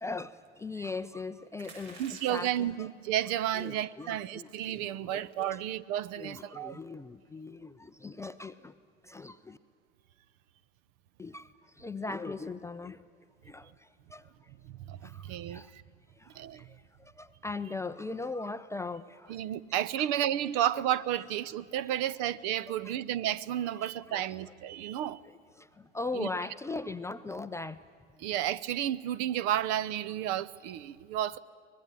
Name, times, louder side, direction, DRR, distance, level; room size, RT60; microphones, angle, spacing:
voice 1, 0.0-2.9 3.5-5.6 6.2-8.7 9.0-9.6 11.2-13.0 13.4-14.5 15.0-15.7 16.2-19.4 20.0-20.1 22.7-22.9 23.8-24.5 25.2-27.8, left 3 dB, 10° left, 0.5 m, -40 dB
sound 1, 1.5-2.7 3.5-3.8 4.2-4.3 4.5-4.7 5.3-5.6, right 3 dB, 65° right, 6.7 m, -52 dB
voice 2, 2.0-6.8 14.6-15.8 16.3-16.7 19.3-25.2 26.1-26.3 28.2-31.4, right 11 dB, 45° right, 0.9 m, -32 dB
24.0 x 20.5 x 9.0 m
hypercardioid pair, 90°, 36 cm